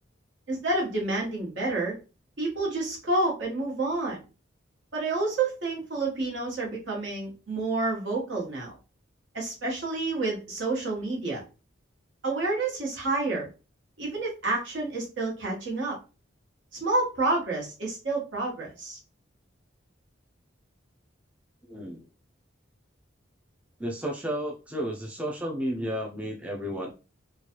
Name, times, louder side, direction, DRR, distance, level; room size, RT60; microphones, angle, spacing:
voice 1, 0.5-2.0 2.4-4.2 4.9-8.7 9.3-11.4 12.2-13.5 14.0-16.0 16.8-19.0, right 2 dB, 65° right, -2 dB, 1.2 m, -29 dB
voice 2, 21.7-22.1 23.8-26.9, equal, 5° right, -1 dB, 0.3 m, -32 dB
3.0 x 2.3 x 2.9 m, 0.32 s
head